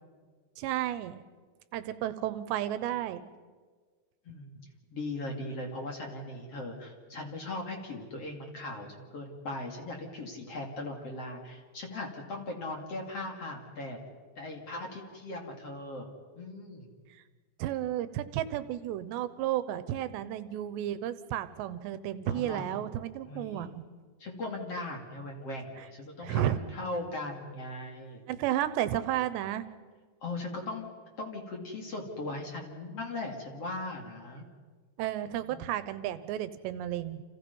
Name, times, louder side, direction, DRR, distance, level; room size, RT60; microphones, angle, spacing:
voice 1, 0.6-1.2 1.7-3.3 17.6-23.8 26.2-26.6 28.3-29.7 35.0-37.2, right 12 dB, 80° right, 13 dB, 3.1 m, -32 dB
voice 2, 4.2-4.6 4.9-14.0 14.4-16.1 16.4-16.9 22.3-22.8 23.2-23.7 24.2-28.2 30.2-30.9 31.2-34.4 35.3-35.7, left 2 dB, 40° left, 1 dB, 3.2 m, -39 dB
29.5 x 28.5 x 5.5 m, 1.5 s
omnidirectional pair, 5.1 m